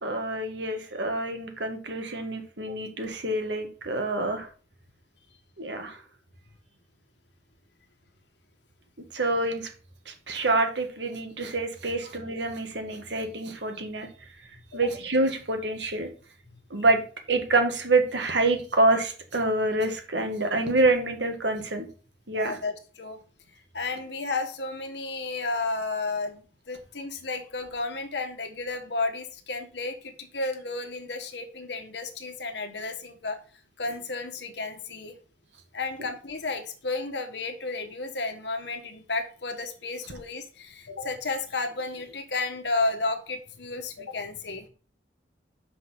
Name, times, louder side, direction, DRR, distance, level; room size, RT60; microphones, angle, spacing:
voice 1, 0.0-4.5 5.6-6.0 9.1-9.7 10.0-14.1 14.7-16.1 16.7-17.0 17.3-21.9 22.3-22.5, right 2 dB, 75° right, 5 dB, 1.7 m, -26 dB
voice 2, 22.3-23.2 23.5-33.4 33.8-35.2 35.7-44.7, left 3 dB, 70° left, 6 dB, 1.3 m, -32 dB
6.0 x 5.5 x 6.8 m, 0.40 s
head